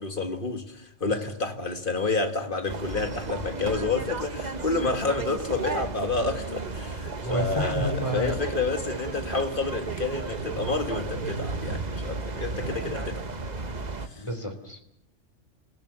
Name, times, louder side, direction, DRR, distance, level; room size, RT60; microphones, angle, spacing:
voice 1, 0.0-13.2 13.6-13.7 14.0-14.2, left 3 dB, 45° left, 2.1 m, -29 dB
sound 1, 2.7-14.1, right 3 dB, 35° right, 1.3 m, -33 dB
voice 2, 7.2-8.3 14.2-14.8, equal, 25° left, 2.9 m, -29 dB
28.5 x 16.5 x 7.1 m
omnidirectional pair, 1.3 m